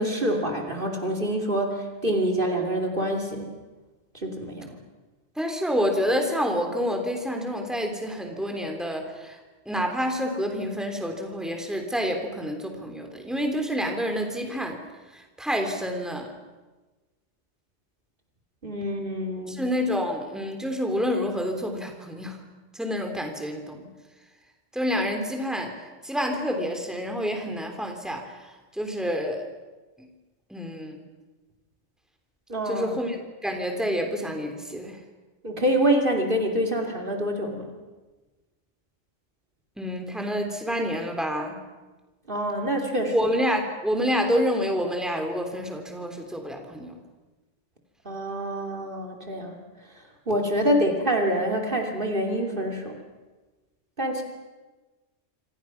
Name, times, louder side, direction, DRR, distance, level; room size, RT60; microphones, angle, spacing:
voice 1, 0.0-3.5 4.2-4.7 18.6-19.6 32.5-32.9 35.4-37.7 42.3-43.1 48.0-49.6 50.3-53.0 54.0-54.2, right 1 dB, 45° right, 2 dB, 3.1 m, -26 dB
voice 2, 5.4-9.4 9.7-14.8 15.1-16.3 19.5-22.4 22.7-23.9 24.7-25.7 26.0-29.4 30.0-30.1 30.5-31.0 32.7-33.2 33.4-35.0 39.8-41.6 43.1-47.0, equal, ahead, 3 dB, 3.5 m, -28 dB
27.5 x 26.5 x 6.0 m, 1.2 s
omnidirectional pair, 1.2 m